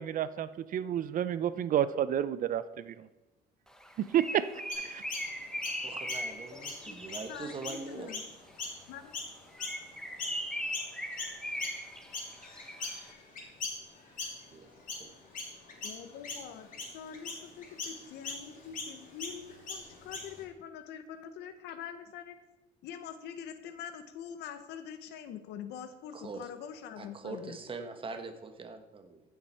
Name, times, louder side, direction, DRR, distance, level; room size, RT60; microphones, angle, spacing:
voice 1, 0.0-3.1 4.0-4.4 4.8-5.0, right 10 dB, 55° right, 15 dB, 0.6 m, -30 dB
Bird, 3.8-7.9 9.5-13.0, equal, 5° left, 1.1 m, -39 dB
Chirp tweet, 4.7-10.4 10.7-20.4, left 3 dB, 50° left, 3.2 m, -41 dB
voice 2, 5.8-8.1 14.5-14.7 15.0-15.1 26.1-26.4 27.0-29.2, right 4 dB, 30° right, 7 dB, 1.3 m, -42 dB
voice 3, 6.5-6.9 7.3-8.3 8.9-9.1 15.8-16.7 16.9-22.4 22.8-27.6, left 8 dB, 80° left, 10 dB, 1.2 m, -44 dB
15.0 x 7.3 x 4.4 m, 1.1 s
cardioid pair, 110°, 17 cm